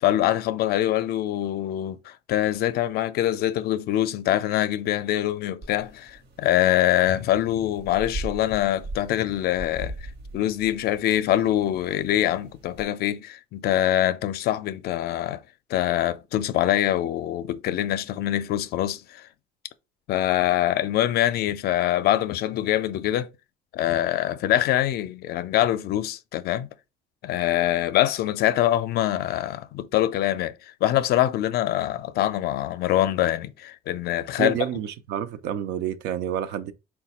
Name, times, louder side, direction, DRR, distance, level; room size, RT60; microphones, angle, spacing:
voice 1, 0.0-10.0 10.3-15.4 15.7-19.2 20.1-23.3 23.7-26.7 27.2-30.5 30.8-34.5, left 13 dB, 70° left, 0.4 m, -24 dB
sound 1, 5.6-12.8, right 2 dB, 65° right, 1.0 m, -40 dB
voice 2, 34.4-36.7, right 10 dB, 85° right, 0.5 m, -29 dB
4.0 x 2.2 x 4.1 m
cardioid pair, 110°, 17 cm